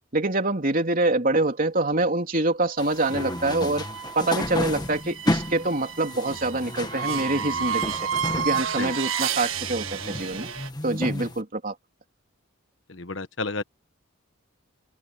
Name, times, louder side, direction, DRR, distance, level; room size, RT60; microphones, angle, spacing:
voice 1, 0.1-3.8 4.1-8.1 8.4-10.5 10.8-11.7, right 2 dB, 45° right, 3.3 m, -25 dB
sound 1, 2.8-11.4, left 1 dB, 20° left, 1.6 m, -33 dB
sound 2, 3.0-10.7, right 7 dB, 90° right, 1.6 m, -31 dB
voice 2, 12.9-13.6, left 3 dB, 65° left, 1.4 m, -32 dB
open air
head